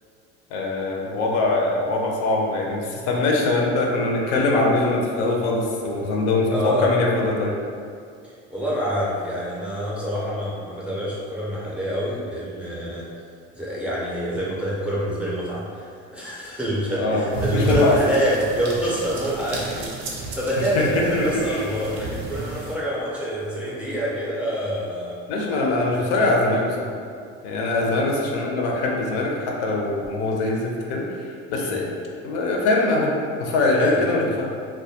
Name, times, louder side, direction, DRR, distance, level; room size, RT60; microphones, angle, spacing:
voice 1, 0.5-7.5 17.0-18.0 20.8-21.7 25.3-26.9 27.4-31.1 31.5-31.9 32.2-34.5, left 2 dB, 85° left, -1 dB, 0.5 m, -22 dB
voice 2, 6.5-6.9 8.2-13.1 13.5-25.2 25.9-26.1 27.7-28.0 31.5-31.9 33.8-34.0, equal, 5° right, -7 dB, 0.4 m, -26 dB
sound 1, 17.3-22.8, right 2 dB, 90° right, 0.5 m, -32 dB
2.2 x 2.1 x 2.7 m, 2.3 s
supercardioid pair, 110°, 32 cm